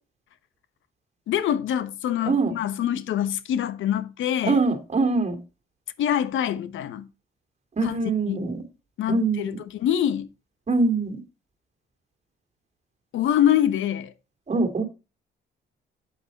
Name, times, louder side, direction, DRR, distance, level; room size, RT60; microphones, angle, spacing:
voice 1, 1.3-4.6 6.0-7.1 7.8-7.9 8.3-8.5 9.0-10.3 13.1-14.1, left 10 dB, 75° left, 1.0 m, -25 dB
voice 2, 4.4-5.4 7.8-8.6 9.1-9.6 10.7-11.2 14.5-14.8, right 3 dB, 35° right, 2.6 m, -23 dB
8.4 x 8.1 x 3.9 m
cardioid pair, 90°, 20 cm